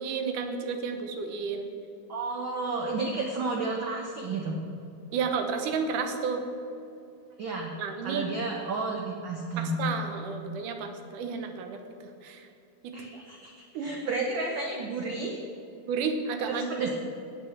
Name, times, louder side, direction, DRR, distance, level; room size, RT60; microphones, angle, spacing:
voice 1, 0.0-1.7 5.1-6.4 7.8-8.3 9.6-12.5 12.8-13.2 13.7-14.1 15.9-16.7, right 5 dB, 80° right, 6 dB, 2.6 m, -32 dB
voice 2, 2.1-4.6 7.4-7.8 8.0-9.8 12.9-15.4 16.5-16.9, right 3 dB, 60° right, 0 dB, 1.3 m, -32 dB
18.0 x 6.2 x 7.3 m, 2.7 s
omnidirectional pair, 3.6 m